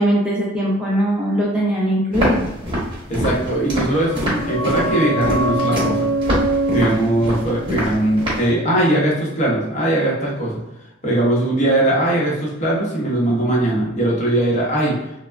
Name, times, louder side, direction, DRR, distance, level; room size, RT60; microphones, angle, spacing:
voice 1, 0.0-2.5, right 1 dB, 5° right, -6 dB, 0.4 m, -20 dB
Walk footsteps, 2.1-8.5, equal, 25° right, 0.8 m, -24 dB
voice 2, 3.1-6.1 6.7-10.6 11.0-14.9, right 1 dB, 35° left, -4 dB, 0.8 m, -20 dB
sound 1, 3.7-9.2 9.4-9.5, right 1 dB, 75° right, 0.7 m, -25 dB
3.2 x 2.0 x 2.3 m, 0.91 s
head